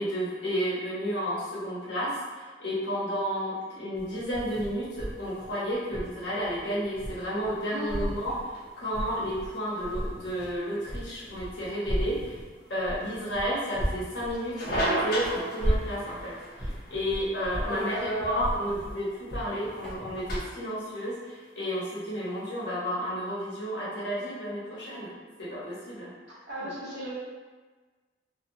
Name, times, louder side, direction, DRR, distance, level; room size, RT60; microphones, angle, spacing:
voice 1, 0.0-8.4 8.8-12.4 12.7-25.1 25.4-26.1 26.6-26.8, equal, 80° left, -7 dB, 1.0 m, -32 dB
sound 1, 4.0-7.6 7.9-9.5 9.8-20.4, equal, ahead, 0.9 m, -35 dB
sound 2, 7.5-22.6, right 1 dB, 55° left, 0.6 m, -38 dB
voice 2, 7.7-8.1 17.6-18.5 26.5-27.1, equal, 70° right, -9 dB, 1.1 m, -34 dB
2.8 x 2.1 x 2.7 m, 1.4 s
head